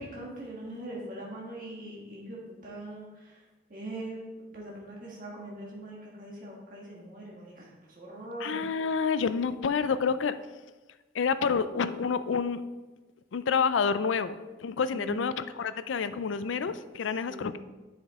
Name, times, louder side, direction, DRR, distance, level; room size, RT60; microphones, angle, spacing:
voice 1, 0.0-3.4 3.7-4.2 4.5-7.7 8.0-8.6 14.9-15.2 17.3-17.6, right 1 dB, 45° right, -4 dB, 1.5 m, -41 dB
voice 2, 8.4-10.3 11.1-12.6 13.3-17.6, left 5 dB, 90° left, 13 dB, 0.4 m, -28 dB
9.9 x 5.2 x 3.7 m, 1.2 s
head